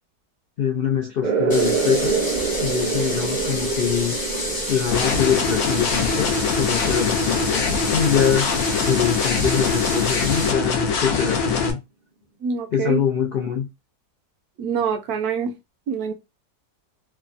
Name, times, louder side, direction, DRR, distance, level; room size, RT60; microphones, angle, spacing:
voice 1, 0.6-2.2 2.6-4.1 4.7-11.8 12.7-13.7, left 8 dB, 85° left, 0.5 m, -24 dB
sound 1, 1.2-8.4, right 5 dB, 50° right, 0.5 m, -27 dB
sound 2, 1.5-10.5, left 1 dB, 25° left, 0.5 m, -30 dB
sound 3, 4.9-11.7, left 5 dB, 70° left, 1.1 m, -23 dB
voice 2, 12.4-13.0 14.6-15.5 15.9-16.1, right 6 dB, 75° right, 1.1 m, -25 dB
3.3 x 2.1 x 2.5 m
omnidirectional pair, 1.7 m